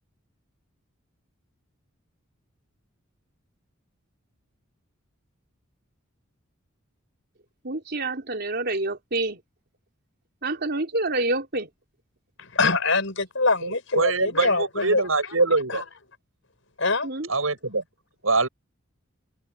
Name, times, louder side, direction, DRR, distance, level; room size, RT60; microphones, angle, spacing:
voice 1, 7.6-9.4 10.4-11.7 17.0-17.3, right 2 dB, 50° right, 4.2 m, -27 dB
voice 2, 12.6-15.0 16.8-17.1, left 3 dB, 65° left, 6.6 m, -23 dB
voice 3, 13.6-15.8 17.3-17.8 18.2-18.5, right 3 dB, 90° right, 7.2 m, -23 dB
head